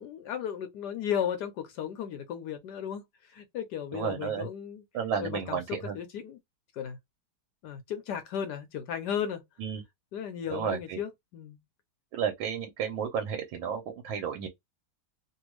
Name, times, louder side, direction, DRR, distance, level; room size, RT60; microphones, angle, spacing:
voice 1, 0.0-3.0 3.3-4.8 5.2-5.6 5.9-6.4 6.8-7.0 7.6-9.4 10.1-11.6, left 8 dB, 75° left, 0.9 m, -35 dB
voice 2, 3.9-4.5 4.9-6.0 9.6-9.8 10.5-11.0 12.1-14.5, right 7 dB, 70° right, 1.4 m, -32 dB
3.3 x 2.3 x 3.0 m
omnidirectional pair, 2.3 m